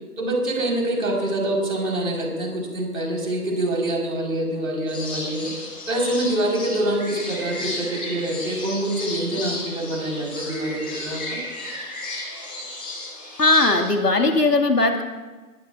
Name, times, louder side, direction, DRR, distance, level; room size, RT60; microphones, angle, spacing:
voice 1, 0.2-5.5 5.9-11.4, right 1 dB, 55° right, 0 dB, 4.4 m, -25 dB
sound 1, 4.9-13.9, left 2 dB, 5° left, 1.1 m, -34 dB
voice 2, 13.4-15.0, left 2 dB, 80° left, 4 dB, 2.0 m, -18 dB
20.0 x 16.5 x 2.4 m, 1.3 s
figure-of-eight pair, 160°, 47 cm